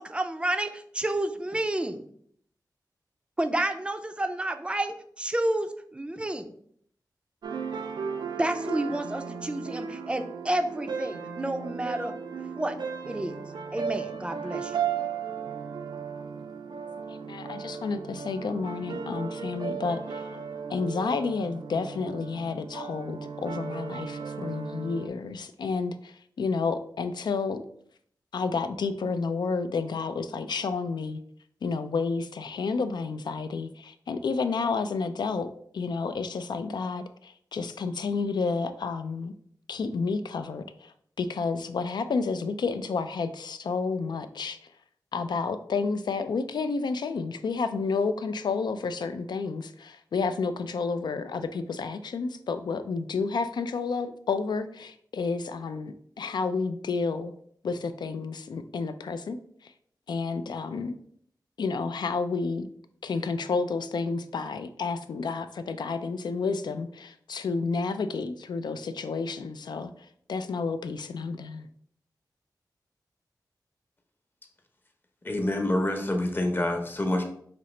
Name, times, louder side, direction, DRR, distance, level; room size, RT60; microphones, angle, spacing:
voice 1, 0.0-2.1 3.4-6.5 8.4-12.1 12.5-12.8 13.1-13.4 13.7-14.8, right 1 dB, 15° right, 7 dB, 0.4 m, -30 dB
sound 1, 7.4-25.1, right 6 dB, 85° right, 0.3 m, -36 dB
voice 2, 17.1-20.3 20.7-27.6 28.3-31.2 31.6-39.3 39.7-44.6 45.1-57.3 57.6-59.7 60.1-61.0 61.6-62.7 63.0-69.9 70.3-71.7, left 4 dB, 80° left, 10 dB, 0.3 m, -30 dB
voice 3, 75.2-77.2, left 1 dB, 30° left, 4 dB, 0.7 m, -27 dB
5.0 x 2.8 x 3.1 m, 0.64 s
wide cardioid pair, 100°, 7 cm